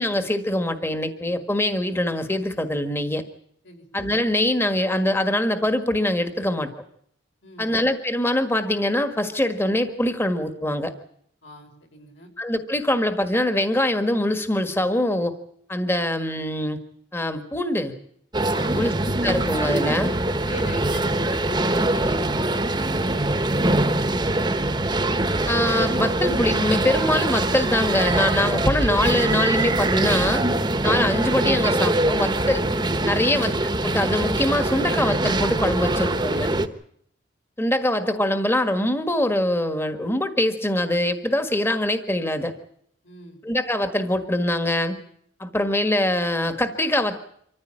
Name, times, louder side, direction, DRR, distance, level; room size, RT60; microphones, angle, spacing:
voice 1, 0.0-3.2 3.9-6.7 7.6-10.9 12.4-15.3 15.7-16.8 17.1-17.9 18.7-18.9 19.2-20.1 25.5-30.4 30.8-32.7 33.0-33.5 33.8-36.5 37.6-42.5 43.4-45.0 45.4-47.2, left 1 dB, 10° left, 8 dB, 1.5 m, -23 dB
voice 2, 7.4-7.8 11.4-12.3 18.5-18.9 20.4-23.9 33.2-33.4 35.7-36.8 43.0-43.4, left 1 dB, 70° left, 3 dB, 5.8 m, -42 dB
sound 1, 18.3-36.7, right 2 dB, 20° right, 1.2 m, -23 dB
25.5 x 14.5 x 8.7 m, 0.69 s
head